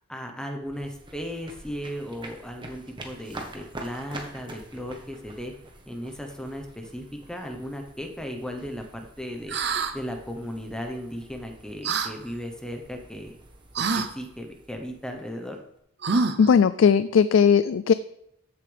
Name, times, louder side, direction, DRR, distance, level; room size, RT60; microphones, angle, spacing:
voice 1, 0.1-5.5 5.9-9.6 9.9-13.4 13.9-15.6, equal, 5° left, 4 dB, 0.9 m, -36 dB
sound 1, 0.6-15.8, right 2 dB, 20° right, 1.2 m, -46 dB
sound 2, 9.5-9.9 11.8-12.1 13.7-14.1 16.0-16.5, right 4 dB, 50° right, 0.7 m, -25 dB
voice 2, 16.4-17.9, left 6 dB, 65° left, 14 dB, 0.3 m, -18 dB
14.0 x 6.9 x 3.5 m, 0.77 s
head